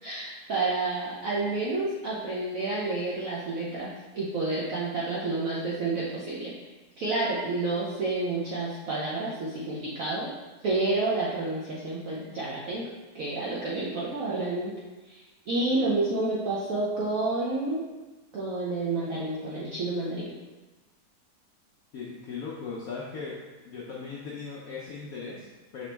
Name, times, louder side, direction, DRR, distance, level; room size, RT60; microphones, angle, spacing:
voice 1, 0.0-6.5 7.0-10.3 10.6-12.9 13.1-14.7 15.1-17.8 18.3-20.3, right 2 dB, 70° right, -6 dB, 0.8 m, -29 dB
voice 2, 21.9-23.4 23.6-25.9, left 5 dB, 80° left, -5 dB, 0.8 m, -38 dB
5.1 x 2.9 x 3.3 m, 1.2 s
omnidirectional pair, 2.2 m